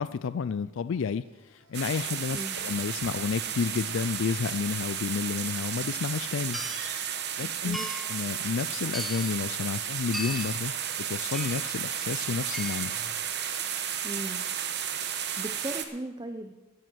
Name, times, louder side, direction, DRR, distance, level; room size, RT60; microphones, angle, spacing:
voice 1, 0.0-6.6 7.4-7.8 8.1-10.7 11.0-12.9, left 6 dB, 60° left, 15 dB, 0.4 m, -31 dB
sound 1, 1.1-3.5 6.3-9.9 12.5-13.1, right 3 dB, 70° right, 3.8 m, -51 dB
sound 2, 1.7-15.9, right 9 dB, 50° right, 1.1 m, -33 dB
sound 3, 5.7-5.8 6.5-6.9 7.7-8.2 8.9-9.4 10.1-10.6 11.3-11.7 12.5-13.0, left 1 dB, ahead, 1.1 m, -38 dB
voice 2, 7.4-7.9 14.0-14.5 15.4-16.5, right 1 dB, 20° right, 6 dB, 0.6 m, -37 dB
15.5 x 9.3 x 6.2 m, 1.1 s
head